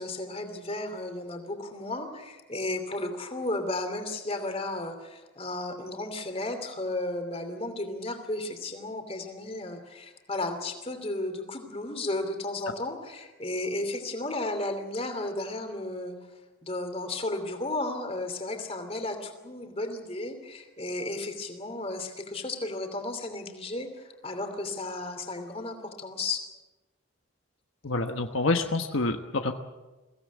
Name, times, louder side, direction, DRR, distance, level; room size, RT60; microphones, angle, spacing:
voice 1, 0.0-16.2 16.6-26.4, left 2 dB, 30° left, 6 dB, 2.9 m, -34 dB
voice 2, 27.8-29.5, left 3 dB, 70° left, 6 dB, 1.2 m, -27 dB
23.0 x 17.0 x 8.3 m, 1.2 s
head